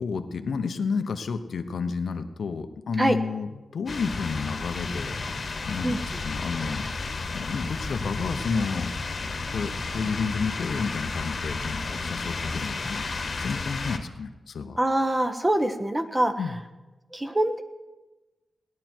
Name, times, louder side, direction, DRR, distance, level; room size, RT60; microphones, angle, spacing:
voice 1, 0.0-5.1 5.7-6.9 7.3-8.9 9.5-14.8 16.4-16.6, left 5 dB, 75° left, 8 dB, 1.0 m, -31 dB
sound 1, 3.9-14.0, left 3 dB, 50° left, 1.4 m, -32 dB
voice 2, 14.8-16.3 17.1-17.6, right 1 dB, 15° right, 8 dB, 1.1 m, -24 dB
18.0 x 10.5 x 4.5 m, 1.1 s
wide cardioid pair, 100°, 0 cm